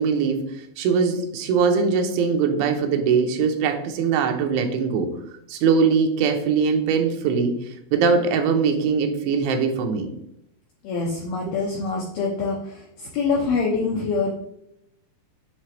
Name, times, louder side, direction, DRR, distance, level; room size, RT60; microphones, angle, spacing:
voice 1, 0.0-5.1 5.5-7.6 7.9-10.1 11.5-11.6, right 5 dB, 85° right, 5 dB, 3.1 m, -21 dB
voice 2, 10.8-14.3, left 4 dB, 90° left, -2 dB, 2.2 m, -25 dB
8.7 x 3.3 x 3.3 m, 0.77 s
omnidirectional pair, 5.3 m